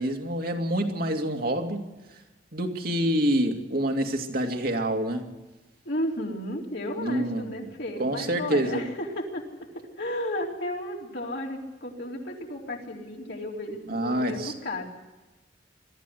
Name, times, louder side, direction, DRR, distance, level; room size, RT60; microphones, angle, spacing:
voice 1, 0.0-1.9 2.5-5.3 7.0-7.7 8.0-8.8 13.9-14.5, right 1 dB, 55° right, 4 dB, 2.5 m, -27 dB
voice 2, 5.9-9.4 9.7-14.8, left 1 dB, 65° left, -1 dB, 4.0 m, -33 dB
22.5 x 14.0 x 9.6 m, 1.1 s
head